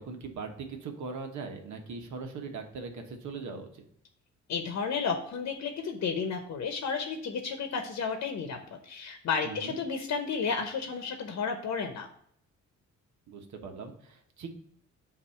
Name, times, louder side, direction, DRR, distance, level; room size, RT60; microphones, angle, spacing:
voice 1, 0.0-3.8 9.4-9.7 13.3-14.5, right 4 dB, 70° right, 4 dB, 1.2 m, -40 dB
voice 2, 4.5-8.6 8.8-12.1, left 5 dB, 60° left, 6 dB, 0.9 m, -32 dB
8.1 x 2.7 x 5.6 m, 0.67 s
cardioid pair, 90°, 30 cm